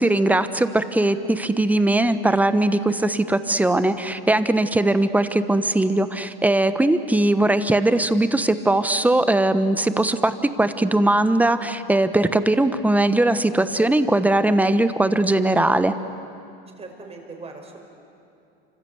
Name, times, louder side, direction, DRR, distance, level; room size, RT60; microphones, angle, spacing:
voice 1, 0.0-15.9, right 1 dB, 5° right, 11 dB, 1.2 m, -20 dB
voice 2, 16.8-17.8, right 3 dB, 20° right, 3 dB, 5.4 m, -39 dB
28.5 x 25.5 x 8.0 m, 2.6 s
supercardioid pair, 115°, 30 cm